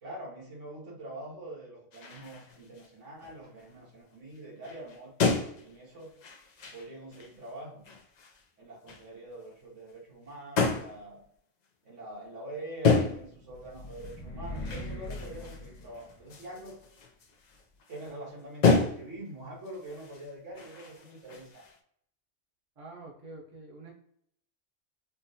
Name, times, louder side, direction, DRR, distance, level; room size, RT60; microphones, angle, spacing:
voice 1, 0.0-6.1 6.7-7.8 8.6-11.2 11.8-16.8 17.9-21.7, right 1 dB, 85° right, -5 dB, 1.7 m, -44 dB
sound 1, 1.9-2.9 3.2-3.8 4.4-4.5 4.6-7.5 7.8-8.4 8.9-9.1 10.6-11.0 12.8-13.4 13.8-18.1 18.6-19.3 19.7-21.8, left 4 dB, 55° left, 0.4 m, -31 dB
sound 2, 13.2-16.6, left 1 dB, 90° left, 1.3 m, -41 dB
voice 2, 22.8-23.9, right 2 dB, 30° right, -2 dB, 0.8 m, -46 dB
4.3 x 2.0 x 2.7 m, 0.67 s
omnidirectional pair, 1.3 m